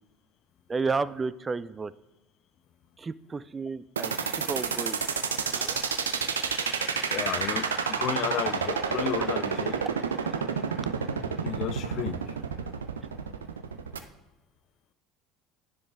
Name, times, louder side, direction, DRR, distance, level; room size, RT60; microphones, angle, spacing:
voice 1, 0.7-1.9 3.0-5.0 5.5-5.8, right 4 dB, 25° right, 17 dB, 0.3 m, -32 dB
sound 1, 4.0-14.0, right 6 dB, 85° right, 0.5 m, -29 dB
voice 2, 7.1-9.8 11.4-12.3, left 10 dB, 50° left, 14 dB, 0.5 m, -33 dB
9.7 x 5.1 x 3.6 m, 1.1 s
hypercardioid pair, 70°, 0 cm